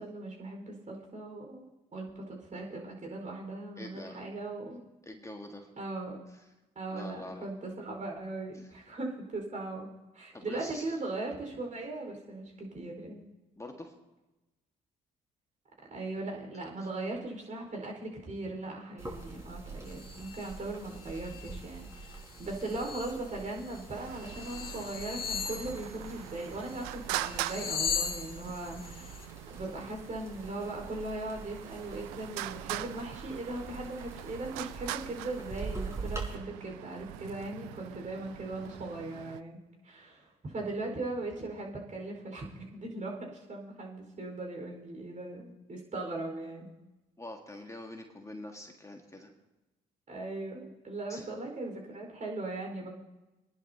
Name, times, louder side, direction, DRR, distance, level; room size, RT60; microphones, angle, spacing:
voice 1, 0.0-4.8 5.8-6.2 6.7-9.9 10.1-13.2 15.9-39.6 39.8-46.7 50.1-52.9, right 2 dB, 40° right, 0 dB, 4.3 m, -39 dB
voice 2, 3.8-4.2 5.0-5.7 6.3-6.4 6.9-7.4 8.5-8.6 10.3-11.0 13.6-13.9 16.8-16.9 47.2-49.3 51.1-51.3, left 1 dB, 15° left, 3 dB, 1.6 m, -45 dB
sound 1, 19.0-36.3, right 3 dB, 15° right, 4.9 m, -45 dB
sound 2, 19.9-20.6 21.0-21.6 21.9-23.2 23.7-23.8 24.2-26.8 27.2-29.2, left 7 dB, 50° left, 1.7 m, -38 dB
Traffic noise roadway noise, 23.9-39.4, right 16 dB, 80° right, 0.4 m, -43 dB
25.0 x 10.5 x 2.8 m, 1.1 s
hypercardioid pair, 50°, 20 cm